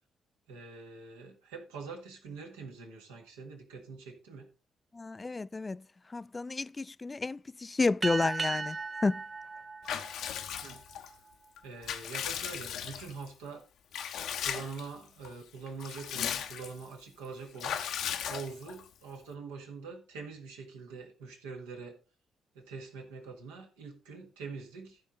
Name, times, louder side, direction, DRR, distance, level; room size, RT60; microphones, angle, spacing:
voice 1, 0.5-4.5 10.6-11.2 11.6-13.6 14.4-22.0 22.6-25.0, right 4 dB, 80° right, 1.7 m, -44 dB
voice 2, 4.9-5.8 6.1-8.8 9.0-9.2, left 3 dB, 30° left, 0.4 m, -31 dB
sound 1, 8.0-11.0, right 4 dB, 35° right, 0.5 m, -37 dB
Water / Bathtub (filling or washing) / Liquid, 9.9-11.1 11.6-13.3 13.9-14.9 15.2-15.3 15.7-16.8 17.6-18.9, left 9 dB, 70° left, 0.8 m, -37 dB
15.0 x 5.3 x 3.6 m
hypercardioid pair, 40°, 0 cm